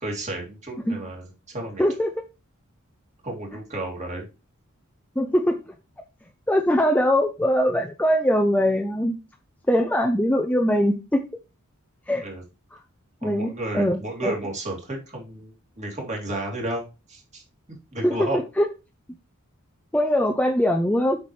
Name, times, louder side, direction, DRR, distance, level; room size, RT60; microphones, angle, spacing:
voice 1, 0.0-1.3 1.5-1.8 3.2-4.3 12.2-12.4 13.2-16.8 17.1-17.4 17.9-18.4, right 1 dB, 30° right, 0 dB, 2.7 m, -32 dB
voice 2, 1.8-2.2 5.2-5.6 6.5-9.1 9.7-11.2 12.1-12.2 13.2-14.4 18.0-18.3 18.6-18.7 19.9-21.2, equal, 5° left, 4 dB, 0.5 m, -22 dB
8.3 x 5.9 x 3.2 m, 0.29 s
head